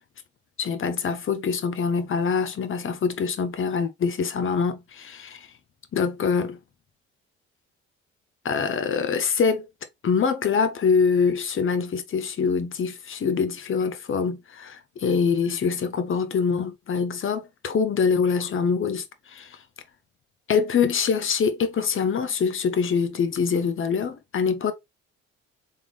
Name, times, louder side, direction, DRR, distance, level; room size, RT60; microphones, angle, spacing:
voice 1, 0.6-5.5 5.9-6.6 8.4-9.7 10.0-19.6 20.5-24.7, left 6 dB, 35° left, 0.9 m, -24 dB
3.7 x 3.5 x 3.0 m
figure-of-eight pair, 45°, 35 cm